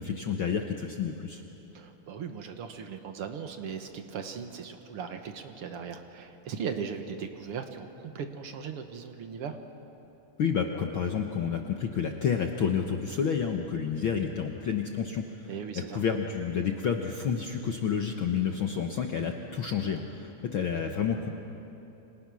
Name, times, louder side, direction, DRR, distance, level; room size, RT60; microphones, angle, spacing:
voice 1, 0.0-1.4 10.4-15.5 15.9-21.3, left 7 dB, 65° left, 3 dB, 1.3 m, -30 dB
voice 2, 1.7-9.6 15.5-16.0, right 6 dB, 55° right, 6 dB, 1.8 m, -38 dB
29.5 x 26.0 x 6.3 m, 2.9 s
omnidirectional pair, 3.7 m